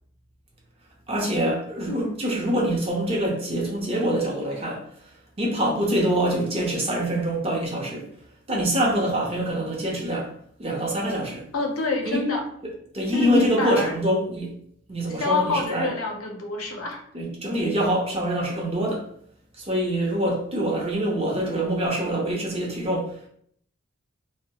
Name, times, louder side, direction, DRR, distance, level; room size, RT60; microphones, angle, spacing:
voice 1, 1.1-4.8 5.4-8.1 8.5-10.3 10.6-11.5 12.0-12.2 12.9-14.5 14.9-15.9 17.1-19.1 19.6-23.1, right 1 dB, 30° right, -2 dB, 0.6 m, -25 dB
voice 2, 11.5-12.5 13.1-13.9 15.1-17.0, left 3 dB, 80° left, 2 dB, 0.6 m, -26 dB
2.1 x 2.0 x 2.8 m, 0.64 s
head